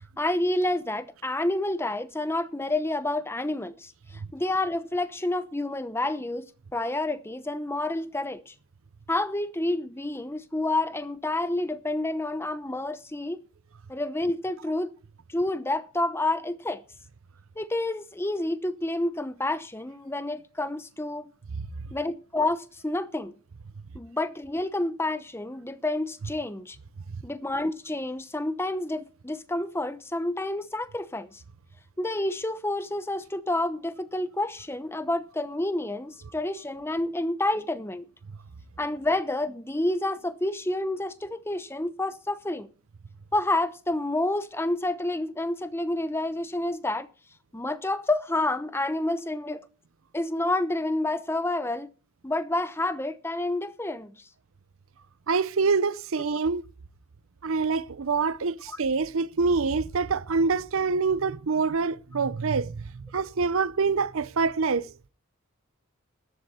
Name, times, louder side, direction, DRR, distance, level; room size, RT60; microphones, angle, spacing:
voice 1, 0.2-8.5 9.1-13.4 13.9-14.9 15.3-16.8 17.6-21.3 21.9-23.3 23.9-26.8 27.2-31.4 32.0-38.0 38.8-42.7 43.3-47.1 47.5-49.6 50.1-51.9 52.2-54.3 58.7-58.8, left 2 dB, 10° left, 0.8 m, -29 dB
voice 2, 55.3-56.6 57.4-64.9, right 4 dB, 60° right, 0.6 m, -26 dB
13.5 x 11.5 x 4.2 m
head